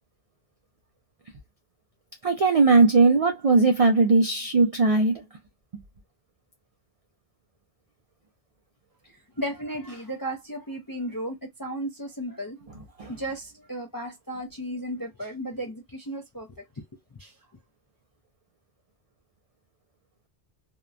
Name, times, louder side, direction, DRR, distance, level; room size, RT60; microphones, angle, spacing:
voice 1, 2.2-5.1 13.0-13.1, right 3 dB, 55° right, 0.4 m, -19 dB
voice 2, 9.4-12.6 13.1-16.5 16.8-16.9 17.2-17.3, right 1 dB, 30° left, 0.4 m, -34 dB
2.8 x 2.1 x 2.3 m
omnidirectional pair, 1.1 m